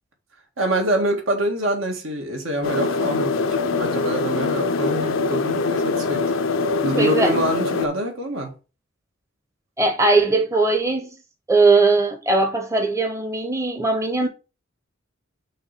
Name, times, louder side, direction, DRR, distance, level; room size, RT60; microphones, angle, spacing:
voice 1, 0.6-6.3 6.8-8.5, right 1 dB, 70° right, 2.1 m, -25 dB
sound 1, 2.6-7.9, left 4 dB, 70° left, 0.6 m, -23 dB
voice 2, 7.0-7.3 9.8-11.1 11.5-14.3, right 3 dB, 15° right, 0.9 m, -19 dB
6.4 x 3.2 x 5.8 m
head